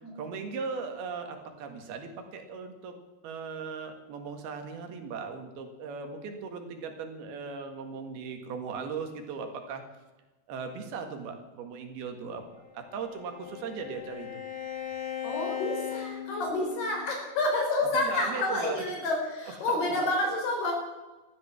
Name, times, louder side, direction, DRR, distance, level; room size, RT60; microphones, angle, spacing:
voice 1, 0.2-3.0 3.2-9.8 10.5-12.4 12.7-14.4 17.9-18.8 19.7-19.8, right 5 dB, 80° right, 5 dB, 3.8 m, -38 dB
Bowed string instrument, 12.5-17.0, left 10 dB, 70° left, 4.5 m, -38 dB
voice 2, 15.2-20.7, left 2 dB, 85° left, 1 dB, 6.3 m, -29 dB
14.5 x 13.0 x 7.3 m, 1.1 s
omnidirectional pair, 4.4 m